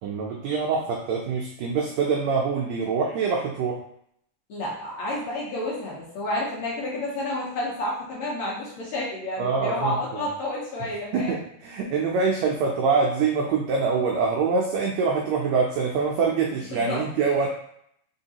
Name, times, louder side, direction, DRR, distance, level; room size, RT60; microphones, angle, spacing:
voice 1, 0.0-3.8 9.4-10.3 11.1-17.5, right 5 dB, 85° right, -1 dB, 1.5 m, -25 dB
voice 2, 4.5-11.4 16.7-17.0, left 1 dB, 65° left, -5 dB, 2.0 m, -30 dB
4.7 x 3.5 x 2.8 m, 0.69 s
omnidirectional pair, 3.7 m